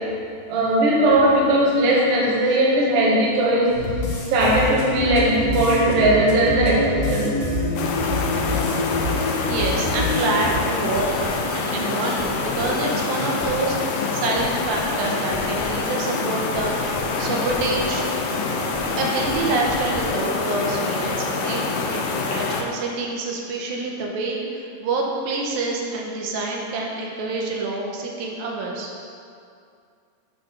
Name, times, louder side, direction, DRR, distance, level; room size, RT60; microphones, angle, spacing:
voice 1, 0.5-3.7 4.3-7.3, right 1 dB, 55° right, -4 dB, 1.7 m, -18 dB
sound 1, 3.7-10.5, left 2 dB, 60° left, 2.3 m, -26 dB
sound 2, 7.8-22.6, left 4 dB, 80° left, 2.5 m, -26 dB
voice 2, 9.5-18.1 19.0-29.0, right 3 dB, 80° right, -1 dB, 2.6 m, -27 dB
sound 3, 10.9-20.3, left 2 dB, 25° right, 1.4 m, -35 dB
7.8 x 4.3 x 6.6 m, 2.4 s
omnidirectional pair, 4.2 m